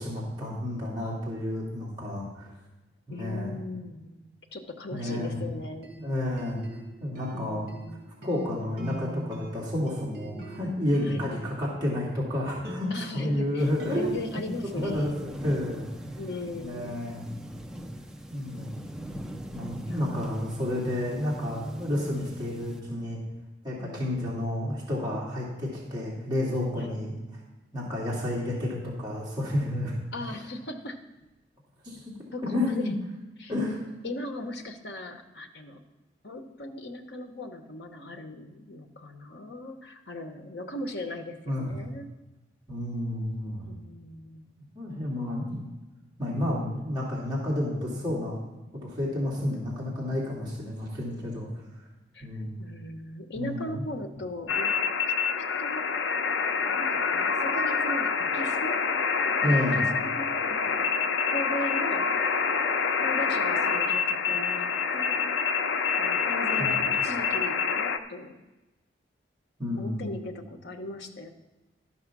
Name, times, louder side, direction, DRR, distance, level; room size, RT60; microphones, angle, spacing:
voice 1, 0.0-2.5 3.1-3.6 4.9-5.4 6.0-6.6 7.0-7.7 8.2-14.1 14.7-15.9 16.6-17.3 18.3-18.9 19.5-23.2 23.6-27.1 27.7-30.0 30.2-30.3 31.8-32.0 32.4-32.9 33.5-33.8 41.4-41.7 42.7-43.7 44.7-45.5 46.2-48.4 48.8-51.5 52.2-52.6 53.3-53.8 59.4-59.8 66.6-66.7 69.6-70.2, left 1 dB, 25° right, -6 dB, 2.8 m, -30 dB
voice 2, 3.1-4.2 4.5-5.9 7.3-8.0 11.0-11.3 12.9-15.2 16.2-17.0 19.9-20.3 23.8-24.2 26.8-27.0 30.1-31.0 32.3-32.9 33.4-33.5 34.0-35.8 36.2-42.1 43.7-44.6 52.1-52.3 52.6-54.8 55.6-55.9 56.7-58.8 59.8-60.9 61.2-62.1 63.0-65.3 66.0-68.4 69.8-71.3, left 1 dB, 65° left, 5 dB, 1.0 m, -38 dB
sound 1, 4.9-12.2 12.6-13.9, right 1 dB, 55° right, 2.3 m, -44 dB
sound 2, 13.6-22.8, equal, 5° right, 0.5 m, -41 dB
sound 3, 54.5-68.0, left 5 dB, 90° left, 0.6 m, -26 dB
12.5 x 6.1 x 6.0 m, 1.1 s
head